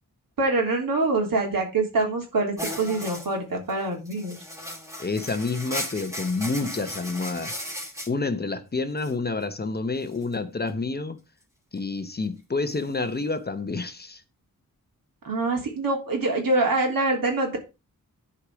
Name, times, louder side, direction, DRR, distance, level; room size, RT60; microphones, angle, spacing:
voice 1, 0.4-4.4 15.2-17.6, right 2 dB, 80° right, 3.4 m, -25 dB
sound 1, 2.6-3.3 3.7-3.8 4.1-8.1 9.0-9.1 10.2-10.3 12.7-12.8, equal, 10° right, 2.7 m, -36 dB
voice 2, 5.0-7.6 8.1-11.2 11.7-14.2, left 3 dB, 30° left, 0.8 m, -28 dB
11.5 x 4.9 x 5.0 m
wide cardioid pair, 170°, 34 cm